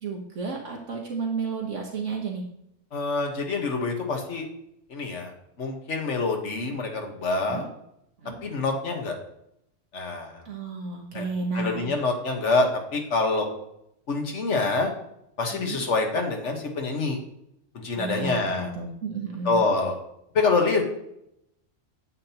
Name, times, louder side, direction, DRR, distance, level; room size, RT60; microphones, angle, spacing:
voice 1, 0.0-2.4 7.3-7.7 8.2-8.4 10.4-12.1 15.5-15.8 17.9-19.6, right 4 dB, 70° right, 0 dB, 1.4 m, -32 dB
voice 2, 2.9-4.5 4.9-5.3 5.6-7.7 8.4-9.2 9.9-10.3 11.1-11.3 11.5-13.5 14.1-14.9 15.4-17.2 17.7-18.7 19.4-20.0 20.3-20.8, left 3 dB, 65° left, 3 dB, 1.6 m, -26 dB
9.6 x 7.6 x 2.9 m, 0.78 s
omnidirectional pair, 1.3 m